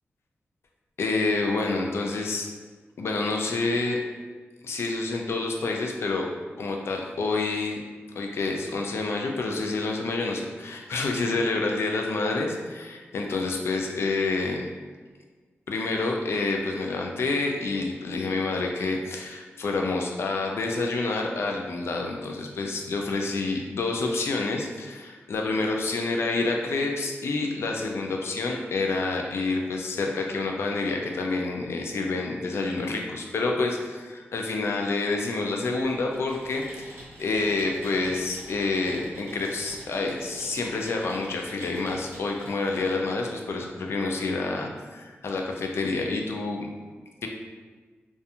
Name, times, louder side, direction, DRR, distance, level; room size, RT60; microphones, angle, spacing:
voice 1, 1.0-2.5 3.0-4.0 4.6-6.3 6.6-7.8 8.2-14.7 15.7-46.7 47.2-47.3, left 3 dB, 70° left, 1 dB, 0.3 m, -28 dB
Computer keyboard, 35.8-42.6, right 1 dB, 65° right, 0.8 m, -46 dB
2.4 x 2.3 x 2.8 m, 1.4 s
wide cardioid pair, 175°, 4 cm